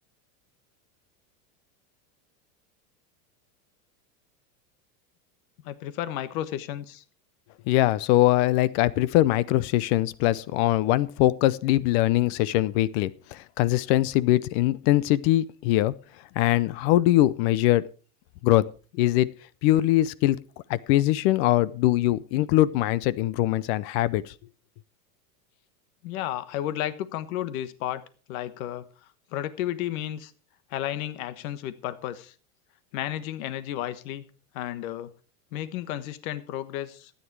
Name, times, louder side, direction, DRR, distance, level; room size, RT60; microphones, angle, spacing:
voice 1, 5.6-7.0 26.0-28.0 28.3-28.9 29.3-30.3 30.7-32.3 32.9-34.2 34.5-35.1 35.5-37.1, left 12 dB, 65° left, 13 dB, 1.3 m, -32 dB
voice 2, 7.7-15.9 16.4-17.8 18.4-18.6 19.0-19.3 19.6-20.4 20.7-24.2, left 15 dB, 45° left, 19 dB, 0.6 m, -22 dB
13.0 x 9.7 x 4.7 m, 0.37 s
supercardioid pair, 150°, 45 cm